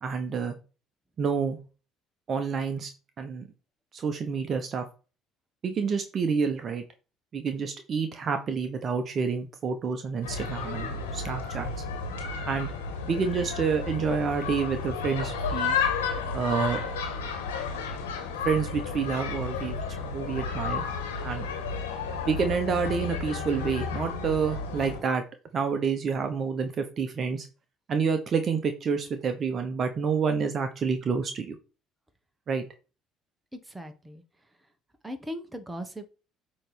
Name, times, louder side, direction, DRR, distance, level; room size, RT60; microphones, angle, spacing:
voice 1, 0.0-0.6 1.2-1.6 2.3-2.9 3.2-3.5 3.9-4.8 5.6-6.8 7.3-11.7 12.5-12.7 13.1-15.8 16.3-16.8 18.4-20.8 21.2-21.5 22.3-25.2 25.5-27.5 27.9-31.6 32.5-32.6, right 5 dB, 45° right, 7 dB, 1.0 m, -28 dB
sound 1, 10.2-25.0, left 5 dB, 85° left, 1.6 m, -32 dB
voice 2, 33.5-34.2 35.0-36.1, equal, 10° right, 7 dB, 1.5 m, -38 dB
8.6 x 3.2 x 5.0 m, 0.34 s
hypercardioid pair, 60°, 0 cm